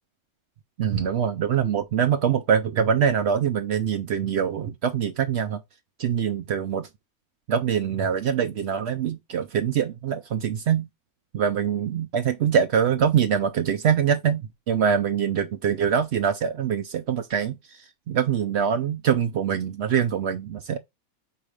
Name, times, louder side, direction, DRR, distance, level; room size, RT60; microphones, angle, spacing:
voice 1, 0.8-5.6 6.0-6.9 7.5-10.9 11.3-20.8, right 8 dB, 70° right, 0.6 m, -24 dB
4.8 x 4.2 x 5.0 m
omnidirectional pair, 1.6 m